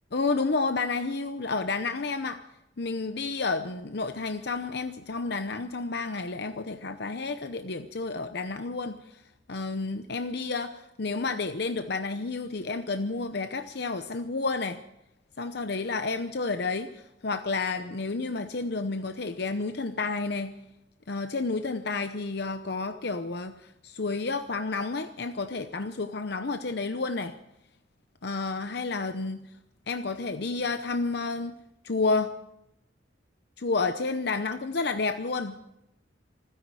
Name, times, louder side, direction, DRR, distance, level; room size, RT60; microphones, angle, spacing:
voice 1, 0.1-2.4 2.8-9.2 9.5-14.8 15.4-20.6 21.1-27.3 28.2-29.5 29.9-31.6 31.8-32.3 33.6-35.6, left 3 dB, 60° left, 8 dB, 0.8 m, -30 dB
26.5 x 10.0 x 4.8 m, 0.86 s
head